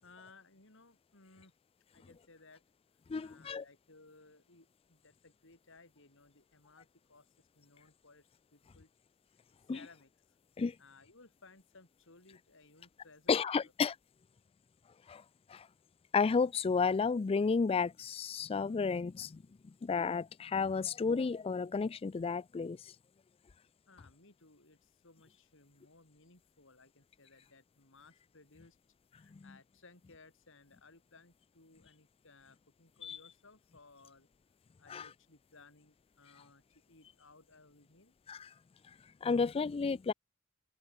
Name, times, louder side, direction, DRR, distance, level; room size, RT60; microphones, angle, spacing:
voice 1, 0.0-1.5 1.9-2.6 3.2-8.9 9.6-10.4 10.8-13.7 23.9-28.8 29.1-34.3 34.8-38.1, left 3 dB, 65° left, 4.0 m, -61 dB
voice 2, 3.1-3.6 9.7-9.8 10.6-10.8 13.3-14.0 15.1-15.2 15.5-15.7 16.1-22.9 29.3-29.5 33.0-33.2 34.9-35.1 38.3-38.5 39.2-40.1, left 5 dB, 25° left, 0.3 m, -32 dB
head